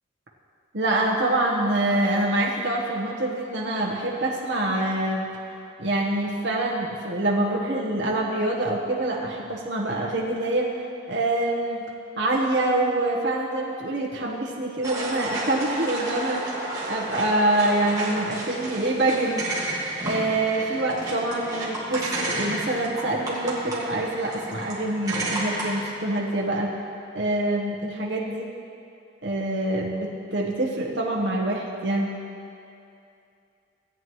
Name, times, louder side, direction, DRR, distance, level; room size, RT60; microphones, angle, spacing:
voice 1, 0.7-5.3 5.8-10.7 11.1-11.8 12.2-16.5 16.9-19.5 20.0-26.7 27.1-28.5 29.2-32.1, right 1 dB, 70° right, -3 dB, 1.1 m, -25 dB
sound 1, 14.8-25.9, right 1 dB, 20° right, 1.8 m, -31 dB
17.0 x 9.0 x 3.1 m, 2.6 s
head